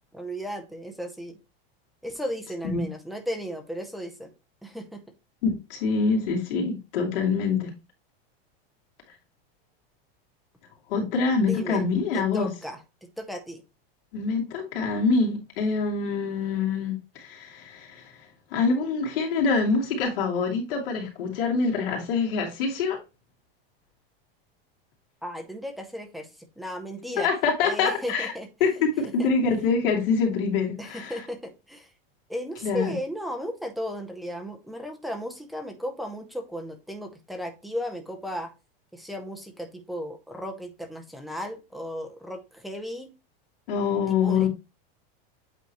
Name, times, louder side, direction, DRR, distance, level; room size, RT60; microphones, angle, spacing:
voice 1, 0.1-1.4 2.0-4.3 4.6-5.0 11.4-11.8 12.1-13.6 25.2-26.3 26.6-27.3 27.6-28.5 29.2-29.3 30.8-31.9 32.3-38.5 38.9-43.1 44.1-44.5, equal, ahead, 0.5 m, -35 dB
voice 2, 5.4-7.7 10.9-12.5 14.1-18.0 18.5-23.0 27.2-28.3 28.6-31.1 32.6-32.9 43.7-44.5, left 4 dB, 65° left, 2.9 m, -25 dB
8.4 x 3.8 x 3.0 m
supercardioid pair, 175°, 30 cm